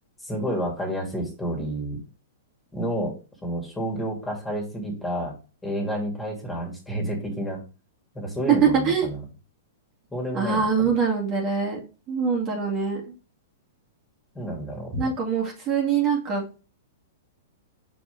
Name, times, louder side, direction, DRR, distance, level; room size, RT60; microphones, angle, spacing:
voice 1, 0.2-2.0 2.7-3.1 3.4-5.3 5.6-7.6 8.1-9.2 10.1-10.9 14.3-15.1, right 1 dB, 10° left, -1 dB, 2.7 m, -30 dB
voice 2, 8.5-9.1 10.3-11.8 12.1-13.1 14.9-16.6, right 6 dB, 35° right, -1 dB, 2.3 m, -23 dB
6.1 x 5.1 x 3.5 m, 0.34 s
hypercardioid pair, 120°, 0 cm